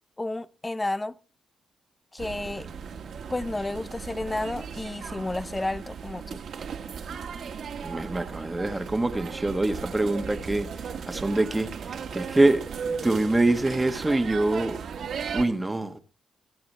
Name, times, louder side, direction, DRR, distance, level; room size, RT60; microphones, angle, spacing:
voice 1, 0.2-1.2 2.1-2.7 3.3-6.4, left 2 dB, 15° left, 0.6 m, -31 dB
sound 1, 2.2-15.4, right 6 dB, 65° right, 1.7 m, -36 dB
voice 2, 7.8-16.0, right 2 dB, 15° right, 1.3 m, -25 dB
23.5 x 8.8 x 3.3 m
cardioid pair, 110°, 0 cm